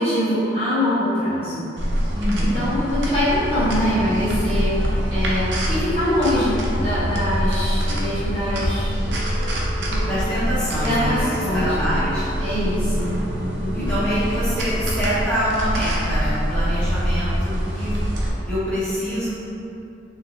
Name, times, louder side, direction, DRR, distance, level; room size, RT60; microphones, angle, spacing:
voice 1, 0.0-1.6 2.4-9.1 9.8-10.0 10.8-11.7 12.4-13.1 13.4-13.9, left 1 dB, 30° left, -14 dB, 1.2 m, -23 dB
sound 1, 1.8-18.3, equal, 75° right, 0.7 m, -25 dB
voice 2, 2.1-2.6 10.0-12.3 13.7-18.0 18.5-19.3, equal, 5° left, -14 dB, 1.4 m, -25 dB
sound 2, 3.3-16.2, left 1 dB, 75° left, 0.6 m, -33 dB
4.6 x 2.9 x 2.8 m, 2.8 s
head